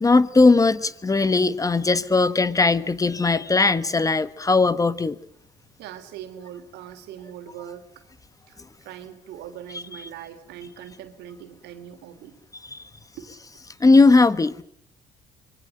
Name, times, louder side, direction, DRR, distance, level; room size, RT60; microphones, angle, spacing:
voice 1, 0.0-5.2 9.7-9.8 12.6-12.8 13.8-14.6, left 3 dB, 20° left, 14 dB, 1.3 m, -19 dB
voice 2, 5.8-8.0 8.5-12.4 13.1-13.3, right 10 dB, 85° right, 9 dB, 3.4 m, -41 dB
25.0 x 24.0 x 7.8 m, 0.66 s
cardioid pair, 110°, 17 cm